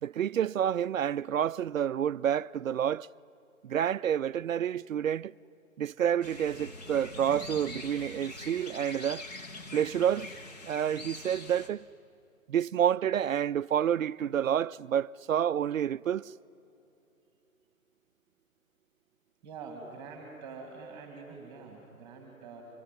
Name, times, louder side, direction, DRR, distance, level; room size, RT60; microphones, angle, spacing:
voice 1, 0.0-3.1 3.6-5.3 5.8-9.2 9.7-10.3 10.6-11.8 12.5-16.3, right 9 dB, 70° right, 0.5 m, -29 dB
sound 1, 6.2-11.7, left 2 dB, 30° left, 1.5 m, -44 dB
voice 2, 19.4-22.6, right 4 dB, 10° right, 2.4 m, -45 dB
25.5 x 21.0 x 9.5 m
hypercardioid pair, 160°, 42 cm